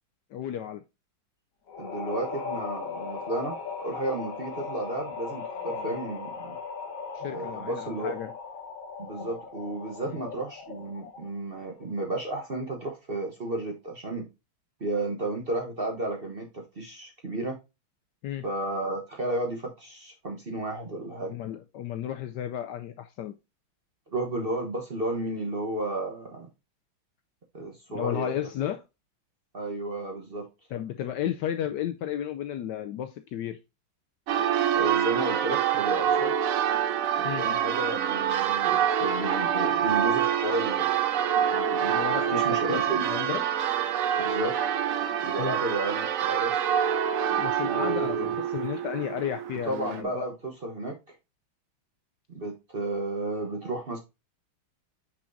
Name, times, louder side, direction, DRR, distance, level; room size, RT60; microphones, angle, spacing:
voice 1, 0.3-0.8 7.1-8.3 10.1-10.2 18.2-18.4 21.3-23.4 27.9-28.8 30.7-33.6 37.2-37.4 41.9-43.4 45.4-45.6 47.4-50.3, left 10 dB, 75° left, 1.0 m, -33 dB
sound 1, 1.7-11.4, left 5 dB, 50° left, 1.3 m, -38 dB
voice 2, 1.8-3.6 3.8-6.6 7.3-8.2 9.0-14.3 14.8-17.6 18.4-21.3 24.1-26.5 27.5-28.3 29.5-30.5 34.7-36.3 37.2-40.9 41.5-43.0 44.2-44.6 45.2-46.6 47.6-48.3 49.7-51.0 52.3-54.0, right 2 dB, 35° right, 1.0 m, -32 dB
Church bell, 34.3-50.0, right 9 dB, 85° right, 0.7 m, -26 dB
6.2 x 5.8 x 2.6 m
omnidirectional pair, 2.2 m